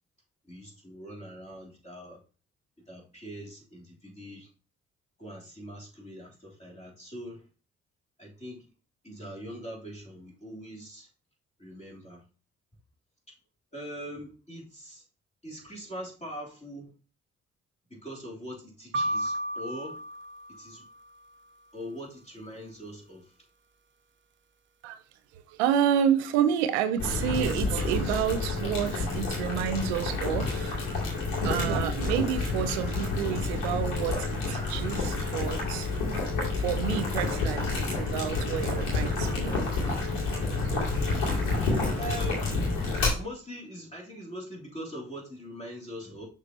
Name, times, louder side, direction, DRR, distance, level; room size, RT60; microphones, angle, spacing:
voice 1, 0.4-2.2 2.9-4.5 5.2-7.5 8.2-8.7 9.0-11.1 11.6-12.2 13.7-15.0 15.4-16.9 17.9-20.0 20.5-20.8 21.7-23.3 41.4-42.7 43.1-46.3, equal, 20° left, 3.3 m, -42 dB
sound 1, 18.9-21.1, right 1 dB, 35° right, 0.6 m, -33 dB
voice 2, 25.3-30.8 31.4-35.9 36.5-39.7 40.3-40.9, right 9 dB, 85° right, 0.5 m, -29 dB
Boiling, 27.0-43.1, left 3 dB, 85° left, 2.2 m, -29 dB
6.4 x 3.6 x 4.1 m
hypercardioid pair, 45°, 32 cm